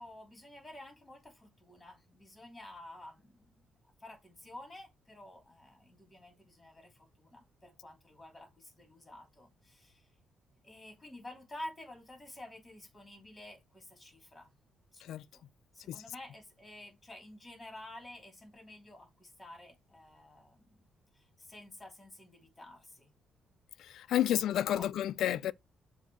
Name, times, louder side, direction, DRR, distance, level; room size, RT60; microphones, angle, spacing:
voice 1, 0.0-3.7 4.0-10.1 10.6-14.5 14.9-15.4 15.7-20.7 21.1-23.1 24.3-24.9, left 1 dB, 15° left, 2.9 m, -51 dB
voice 2, 23.8-25.5, left 12 dB, 75° left, 0.3 m, -31 dB
7.0 x 2.7 x 5.4 m
cardioid pair, 90°, 0 cm